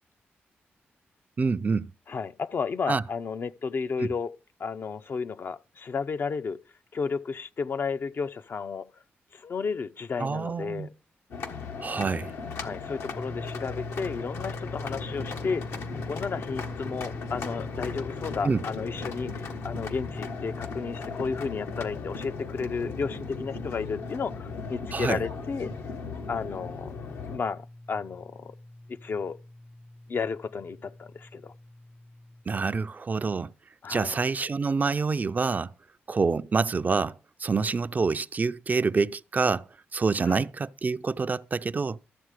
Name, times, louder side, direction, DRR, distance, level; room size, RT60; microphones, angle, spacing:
voice 1, 1.4-1.9 2.9-3.0 4.0-4.1 10.2-10.9 11.8-12.3 18.4-18.6 24.9-25.2 32.5-33.5 33.9-35.7 36.1-42.0, right 4 dB, 40° right, 0.4 m, -27 dB
voice 2, 2.1-4.3 4.6-6.6 6.9-8.9 9.3-10.9 12.6-15.8 16.1-25.7 26.3-27.0 27.3-28.6 28.9-29.4 30.1-31.5 33.8-34.2 40.2-40.4, left 5 dB, 55° left, 0.6 m, -33 dB
sound 1, 11.3-27.4, left 5 dB, 80° left, 1.3 m, -37 dB
sound 2, 13.1-32.4, left 1 dB, 10° left, 0.5 m, -43 dB
13.0 x 7.3 x 5.0 m
cardioid pair, 65°, 4 cm